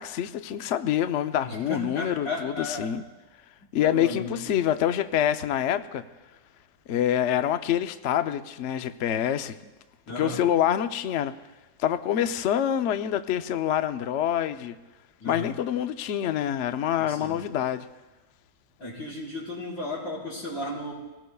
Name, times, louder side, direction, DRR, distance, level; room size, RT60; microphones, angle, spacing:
voice 1, 0.0-3.0 3.7-6.0 6.9-9.5 10.2-11.3 11.8-14.8 15.2-17.9, left 10 dB, 70° left, 0.6 m, -26 dB
voice 2, 1.4-2.9 3.8-4.5 10.1-10.4 15.2-15.5 17.0-17.4 18.8-20.9, left 2 dB, 85° left, 5.7 m, -34 dB
27.5 x 18.5 x 2.3 m
omnidirectional pair, 2.0 m